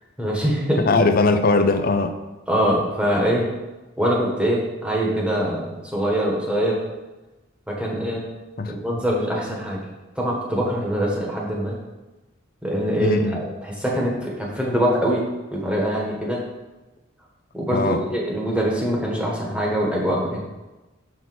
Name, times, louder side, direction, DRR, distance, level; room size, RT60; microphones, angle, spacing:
voice 1, 0.2-0.8 2.5-3.5 4.0-6.8 7.7-8.3 8.7-9.8 10.2-11.8 12.6-15.3 15.5-16.4 17.5-20.4, equal, 5° right, -3 dB, 1.3 m, -23 dB
voice 2, 0.8-2.1 8.6-8.7 13.0-13.4 17.7-18.0, left 3 dB, 45° left, 8 dB, 0.6 m, -20 dB
6.1 x 4.1 x 6.0 m, 1.1 s
head